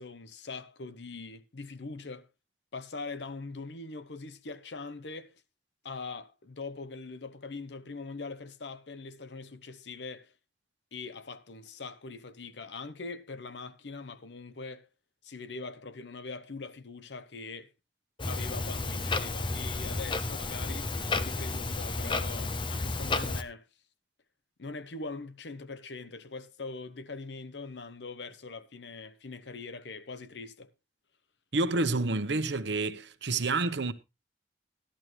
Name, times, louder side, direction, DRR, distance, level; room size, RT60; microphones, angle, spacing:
voice 1, 0.0-2.3 2.7-5.4 5.8-10.3 10.9-14.9 15.2-17.7 18.3-23.7 24.6-30.7, left 3 dB, 75° left, 0.8 m, -42 dB
Clock, 18.2-23.4, left 3 dB, 30° left, 0.8 m, -32 dB
voice 2, 31.5-33.9, right 3 dB, 80° right, 0.9 m, -29 dB
14.0 x 11.5 x 3.1 m
head